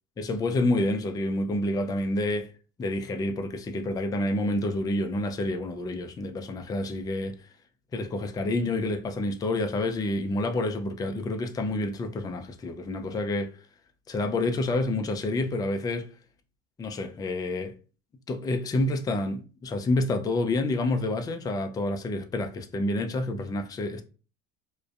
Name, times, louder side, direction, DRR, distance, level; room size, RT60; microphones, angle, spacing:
voice 1, 0.2-2.5 2.8-7.4 7.9-13.6 14.1-16.1 16.8-17.7 18.3-24.0, left 2 dB, 15° left, 0.3 m, -28 dB
2.4 x 2.2 x 2.3 m
hypercardioid pair, 75°, 31 cm